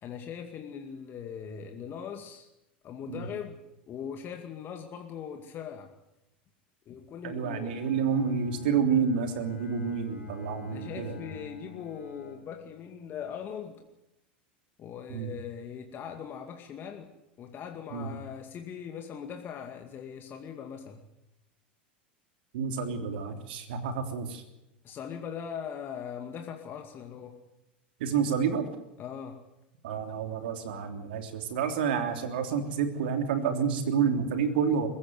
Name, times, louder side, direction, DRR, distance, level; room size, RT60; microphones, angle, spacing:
voice 1, 0.0-2.5 2.8-5.9 6.9-7.8 10.7-13.8 14.8-17.1 17.4-21.0 24.8-27.4 29.0-29.4, left 7 dB, 40° left, 4 dB, 2.2 m, -40 dB
voice 2, 7.2-11.2 15.1-15.3 17.9-18.1 22.5-24.4 28.0-28.7 29.8-34.9, right 6 dB, 70° right, 6 dB, 3.3 m, -29 dB
Bowed string instrument, 7.3-13.1, left 5 dB, 85° left, 4.6 m, -49 dB
22.5 x 15.5 x 9.5 m, 0.91 s
hypercardioid pair, 85°, 6 cm